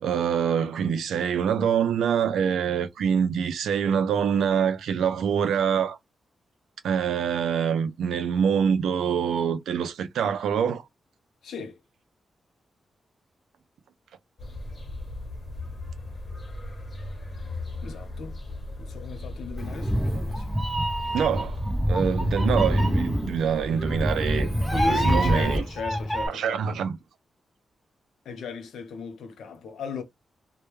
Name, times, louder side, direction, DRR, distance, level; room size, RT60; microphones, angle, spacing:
voice 1, 0.0-6.0 6.8-10.8 21.1-25.6 26.3-27.0, right 7 dB, 90° right, 0.4 m, -25 dB
voice 2, 11.4-11.8 17.8-18.4 18.8-20.5 24.7-26.6 28.2-30.0, left 5 dB, 85° left, 0.7 m, -36 dB
sound 1, 14.4-25.5, left 1 dB, 40° left, 0.9 m, -37 dB
Meow, 19.6-26.3, equal, 10° right, 0.6 m, -25 dB
2.2 x 2.1 x 3.0 m
cardioid pair, 75°, 0 cm